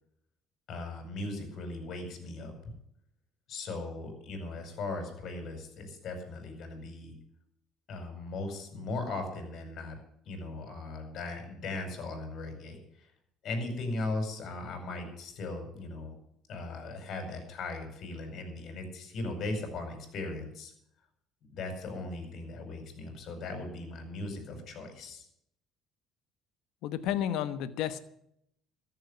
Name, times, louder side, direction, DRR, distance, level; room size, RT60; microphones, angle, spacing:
voice 1, 0.7-2.7 3.5-7.1 7.9-10.0 10.2-13.1 13.4-16.1 16.5-20.7 21.5-25.3, left 2 dB, 55° left, 5 dB, 5.1 m, -38 dB
voice 2, 26.8-28.0, left 10 dB, 75° left, 13 dB, 1.2 m, -31 dB
14.0 x 7.5 x 10.0 m, 0.72 s
cardioid pair, 100°, 0 cm